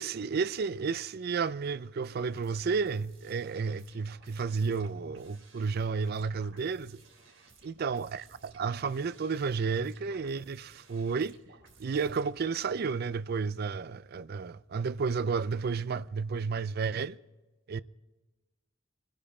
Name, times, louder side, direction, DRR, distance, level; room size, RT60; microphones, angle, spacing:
voice 1, 0.0-7.0 7.6-11.4 11.8-17.2 17.7-17.8, right 5 dB, 50° right, 0.4 m, -32 dB
sound 1, 2.2-12.6, right 3 dB, 75° right, 3.5 m, -58 dB
25.5 x 10.0 x 4.3 m
head